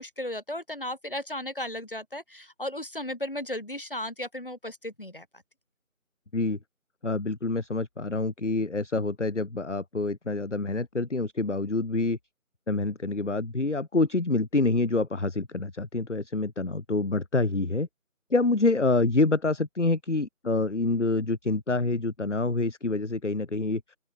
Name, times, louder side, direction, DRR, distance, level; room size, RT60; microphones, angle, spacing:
voice 1, 0.0-5.4, left 1 dB, 40° left, 2.6 m, -35 dB
voice 2, 7.0-12.2 12.7-17.9 18.3-23.8, left 3 dB, 55° left, 1.0 m, -27 dB
open air
figure-of-eight pair, 175°, 42 cm